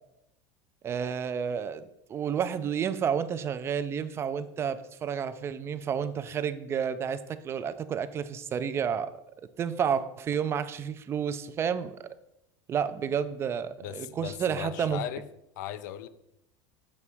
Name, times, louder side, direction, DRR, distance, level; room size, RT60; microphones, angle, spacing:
voice 1, 0.8-1.8 2.1-9.1 9.6-12.1 12.7-15.0, right 7 dB, 25° right, 13 dB, 0.3 m, -30 dB
voice 2, 13.8-15.2 15.6-16.1, left 11 dB, 90° left, 13 dB, 0.4 m, -37 dB
7.1 x 2.9 x 4.7 m, 0.85 s
supercardioid pair, 130°, 10 cm